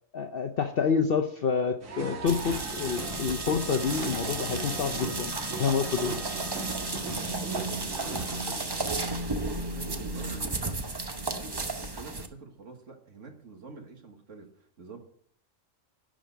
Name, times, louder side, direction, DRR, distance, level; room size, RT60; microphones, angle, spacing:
voice 1, 0.1-6.2, left 6 dB, 55° left, 6 dB, 0.8 m, -28 dB
sound 1, 1.8-8.5, right 3 dB, 90° right, 1.9 m, -39 dB
sound 2, 2.3-12.3, right 2 dB, 25° right, 0.7 m, -33 dB
Wind instrument woodwind instrument, 2.5-7.2, right 2 dB, 15° left, 1.5 m, -50 dB
voice 2, 7.4-8.8 9.1-10.8 11.2-15.0, right 3 dB, 65° right, 4 dB, 1.9 m, -46 dB
11.5 x 5.2 x 7.8 m, 0.65 s
omnidirectional pair, 1.4 m